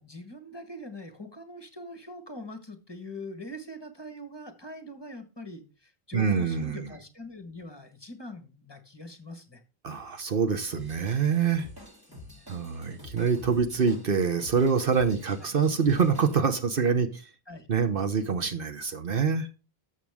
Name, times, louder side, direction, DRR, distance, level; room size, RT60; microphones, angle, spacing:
voice 1, 0.0-9.6 12.1-12.5 15.4-15.5 17.5-17.7, left 1 dB, 25° left, 7 dB, 1.5 m, -43 dB
voice 2, 6.1-6.8 9.8-11.7 12.5-17.2 17.7-19.5, right 6 dB, 60° right, 9 dB, 1.1 m, -25 dB
Drum kit / Drum, 10.7-16.3, left 1 dB, 20° right, 2.7 m, -48 dB
13.5 x 6.6 x 3.5 m, 0.33 s
omnidirectional pair, 1.1 m